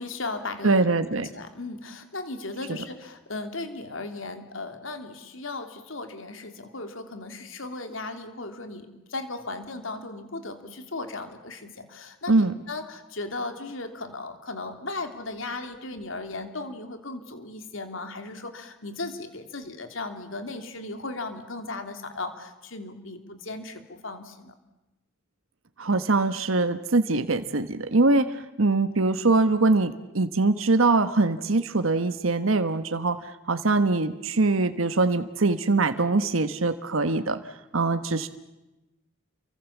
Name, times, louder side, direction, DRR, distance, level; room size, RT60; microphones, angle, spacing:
voice 1, 0.0-24.5, left 2 dB, 75° left, 7 dB, 3.0 m, -36 dB
voice 2, 0.6-1.3 12.3-12.5 25.8-37.4 37.7-38.3, right 3 dB, 80° right, 10 dB, 1.2 m, -23 dB
29.5 x 24.0 x 7.3 m, 1.0 s
head